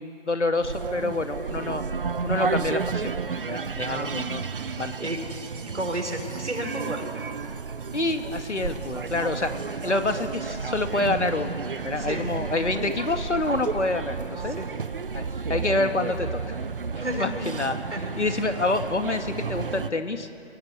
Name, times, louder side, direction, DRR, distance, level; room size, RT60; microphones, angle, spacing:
voice 1, 0.0-1.8 2.2-3.1 3.5-4.4 4.8-5.1 7.9-9.5 9.8-11.5 11.8-14.6 15.1-15.2 15.5-16.6 17.0-17.7 18.2-20.3, left 2 dB, 80° left, 7 dB, 2.2 m, -27 dB
sound 1, 0.6-19.9, right 5 dB, 50° right, 0.9 m, -32 dB
voice 2, 3.8-4.1 4.7-5.2 5.7-7.0 8.6-8.7 12.0-12.3 14.4-14.7 17.0-17.5 17.9-18.1, right 1 dB, 80° right, 3 dB, 5.0 m, -32 dB
30.0 x 18.0 x 8.3 m, 2.6 s
figure-of-eight pair, 155°, 35 cm